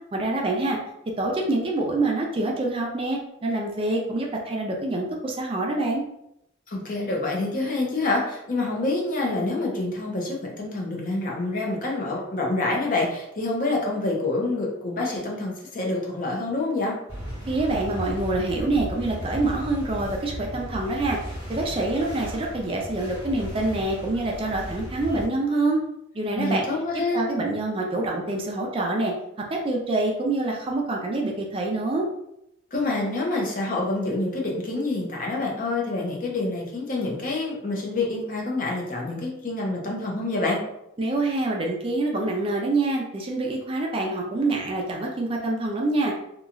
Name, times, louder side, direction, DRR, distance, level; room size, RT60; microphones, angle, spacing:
voice 1, 0.1-0.8 1.2-6.0 17.5-21.2 21.5-25.8 26.1-26.6 27.1-32.1 41.0-46.2, right 2 dB, 30° right, 0 dB, 0.4 m, -26 dB
voice 2, 6.7-16.9 26.4-27.3 32.7-40.6, left 2 dB, 45° left, -1 dB, 0.6 m, -27 dB
sound 1, 17.1-25.3, equal, 65° left, 1.4 m, -35 dB
2.9 x 2.3 x 2.4 m, 0.80 s
head